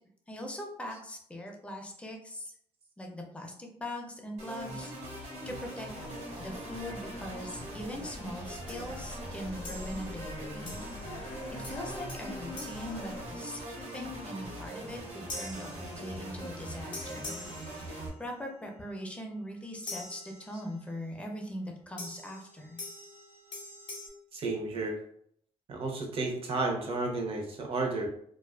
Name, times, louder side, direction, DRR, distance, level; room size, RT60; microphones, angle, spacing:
voice 1, 0.3-2.5 3.0-5.9 6.4-10.7 11.1-22.8, left 1 dB, 10° left, 1 dB, 0.5 m, -41 dB
sound 1, 4.4-18.1, right 1 dB, 75° right, 1.0 m, -42 dB
sound 2, 5.9-13.3, left 2 dB, 80° left, 0.5 m, -46 dB
sound 3, 8.7-9.1 9.6-10.2 10.7-11.2 11.6-13.8 15.3-16.5 16.9-18.4 19.9-20.9 22.0-24.1, left 2 dB, 45° left, 0.7 m, -45 dB
voice 2, 24.3-25.0 25.7-28.1, right 3 dB, 55° right, 1 dB, 0.6 m, -32 dB
2.4 x 2.3 x 2.2 m, 0.66 s
cardioid pair, 120°, 12 cm